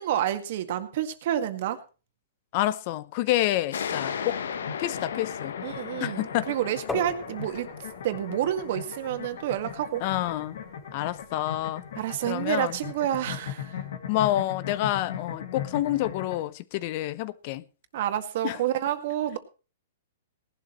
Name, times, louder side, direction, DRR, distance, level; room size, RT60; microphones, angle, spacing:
voice 1, 0.0-1.8 5.6-7.7 8.0-10.0 12.0-13.8 17.9-19.4, right 11 dB, 55° right, 1.8 m, -29 dB
voice 2, 2.5-4.4 4.8-5.6 6.0-6.5 10.0-10.6 10.9-11.8 12.3-12.8 14.1-17.6 18.4-18.6, left 14 dB, 40° left, 0.7 m, -28 dB
sound 1, 3.7-10.9, left 7 dB, 85° left, 1.1 m, -37 dB
sound 2, 4.4-16.4, left 8 dB, 70° left, 2.4 m, -39 dB
sound 3, 6.9-12.5, left 2 dB, 10° left, 4.3 m, -43 dB
18.0 x 11.5 x 3.1 m
hypercardioid pair, 150°, 0 cm